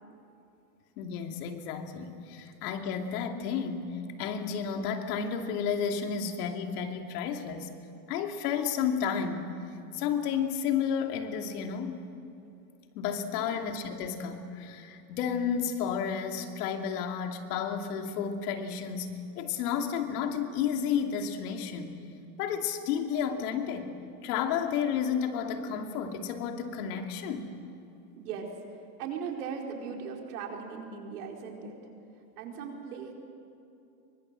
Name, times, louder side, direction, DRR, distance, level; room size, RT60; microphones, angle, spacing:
voice 1, 1.0-7.7 8.1-9.5 9.9-12.1 12.9-21.9 22.4-23.9 24.2-27.5, left 7 dB, 80° left, 4 dB, 2.7 m, -32 dB
voice 2, 28.2-28.5 29.0-31.8 32.4-33.1, right 6 dB, 85° right, 1 dB, 4.6 m, -38 dB
26.5 x 23.5 x 7.6 m, 2.7 s
supercardioid pair, 125°, 45 cm